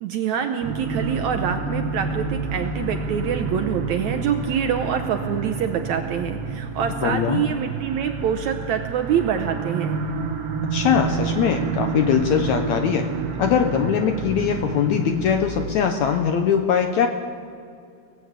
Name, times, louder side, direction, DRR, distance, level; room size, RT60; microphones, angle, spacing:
voice 1, 0.0-10.0, right 8 dB, 75° right, 6 dB, 1.8 m, -25 dB
sound 1, 0.6-15.7, right 4 dB, 60° right, 1.7 m, -29 dB
voice 2, 7.0-7.4 10.7-13.1 13.4-17.1, left 8 dB, 75° left, 6 dB, 1.8 m, -21 dB
18.5 x 17.0 x 8.1 m, 2.4 s
omnidirectional pair, 4.1 m